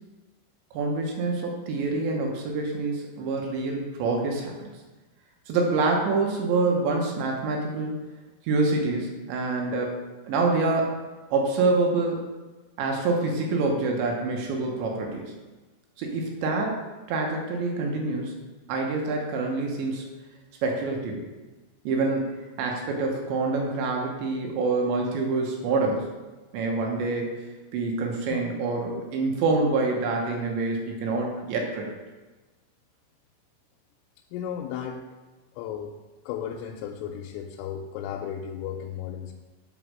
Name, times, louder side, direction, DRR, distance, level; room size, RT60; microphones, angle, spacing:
voice 1, 0.7-4.7 5.5-8.0 8.4-11.0 11.3-12.2 12.8-15.3 16.0-16.8 17.1-18.4 18.7-20.1 20.6-21.2 21.8-22.3 22.6-26.1 26.5-27.3 27.7-31.9, right 3 dB, 75° right, 0 dB, 2.9 m, -26 dB
voice 2, 34.3-35.1 35.5-36.0 36.2-39.3, left 8 dB, 85° left, 1 dB, 3.1 m, -35 dB
8.2 x 4.1 x 6.1 m, 1.2 s
omnidirectional pair, 5.8 m